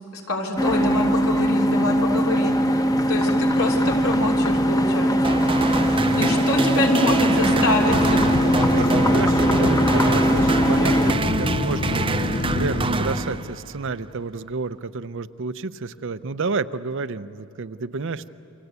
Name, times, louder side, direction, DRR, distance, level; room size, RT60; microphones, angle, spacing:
voice 1, 0.1-2.8 3.1-5.4 6.1-8.2 8.6-8.7, left 2 dB, 70° left, 0 dB, 3.3 m, -26 dB
sound 1, 0.6-11.1, equal, 15° left, 0.9 m, -21 dB
sound 2, 5.2-13.8, right 3 dB, 25° right, 0.6 m, -26 dB
voice 2, 7.3-7.9 8.4-18.3, right 4 dB, 60° right, 13 dB, 0.7 m, -30 dB
sound 3, 7.9-13.7, left 2 dB, 40° left, 0.6 m, -27 dB
29.0 x 25.0 x 8.2 m, 2.8 s
head